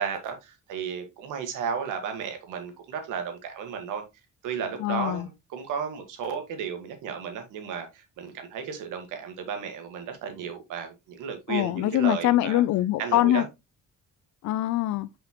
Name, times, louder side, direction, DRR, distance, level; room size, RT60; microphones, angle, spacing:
voice 1, 0.0-4.0 4.4-12.6 13.0-13.4, right 7 dB, 90° right, 1.7 m, -34 dB
voice 2, 4.8-5.3 11.5-13.4 14.4-15.1, left 14 dB, 70° left, 0.5 m, -23 dB
5.8 x 5.4 x 3.0 m
cardioid pair, 90°, 30 cm